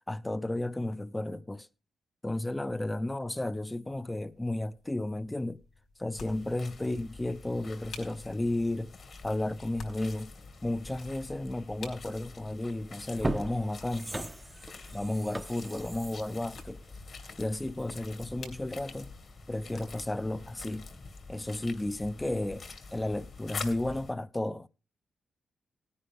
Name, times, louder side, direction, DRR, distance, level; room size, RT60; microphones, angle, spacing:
voice 1, 0.1-1.7 2.2-5.6 6.0-8.9 9.2-10.3 10.6-14.3 14.9-16.8 17.4-19.1 19.5-20.9 21.3-22.6 22.9-24.7, left 1 dB, 15° left, 0.6 m, -33 dB
sound 1, 3.9-20.3, left 5 dB, 75° left, 4.8 m, -54 dB
sound 2, 6.1-24.1, left 4 dB, 60° left, 2.0 m, -47 dB
sound 3, 12.4-12.6 13.0-17.8 18.2-18.3, right 2 dB, 20° right, 0.7 m, -38 dB
18.0 x 9.7 x 3.5 m
cardioid pair, 65°, 0 cm